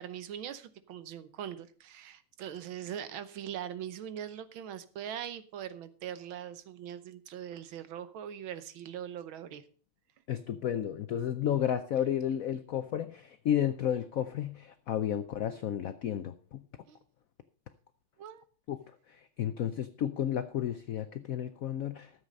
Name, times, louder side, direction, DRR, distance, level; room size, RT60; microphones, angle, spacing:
voice 1, 0.0-9.6 16.9-17.0 18.2-18.4, right 9 dB, 75° right, 13 dB, 1.7 m, -41 dB
voice 2, 10.3-16.6 18.7-18.8 19.1-22.1, left 10 dB, 85° left, 11 dB, 0.7 m, -32 dB
13.0 x 7.9 x 5.3 m, 0.43 s
omnidirectional pair, 2.3 m